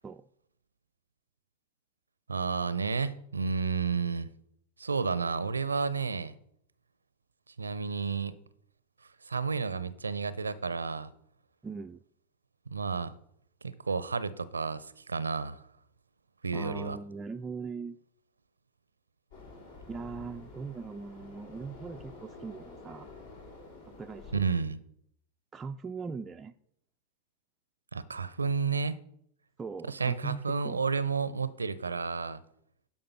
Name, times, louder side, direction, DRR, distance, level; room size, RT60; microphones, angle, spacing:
voice 1, 2.3-4.3 4.8-6.3 7.6-8.3 9.3-11.1 12.7-13.1 13.6-15.6 16.4-17.0 24.3-24.8 27.9-29.0 29.9-32.4, right 5 dB, 75° right, 0.5 m, -31 dB
voice 2, 11.6-12.0 16.5-18.0 19.9-23.1 23.9-24.5 25.5-26.5 29.6-30.8, right 5 dB, 15° right, 0.3 m, -40 dB
sound 1, 19.3-24.5, left 3 dB, 65° left, 3.0 m, -49 dB
11.5 x 5.4 x 5.6 m
figure-of-eight pair, 90°, 0 cm